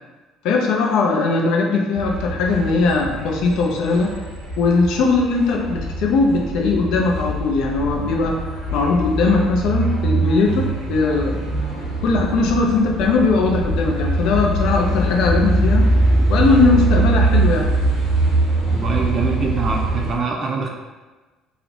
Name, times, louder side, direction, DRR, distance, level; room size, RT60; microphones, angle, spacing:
voice 1, 0.4-4.2 4.6-8.4 8.7-11.4 12.0-15.9 16.3-17.7, left 4 dB, 65° left, 0 dB, 0.4 m, -19 dB
sound 1, 1.9-20.1, right 2 dB, 85° right, 0.8 m, -22 dB
voice 2, 18.7-20.7, right 4 dB, 40° right, 1 dB, 0.3 m, -24 dB
2.4 x 2.0 x 2.8 m, 1.2 s
figure-of-eight pair, 55°, 0 cm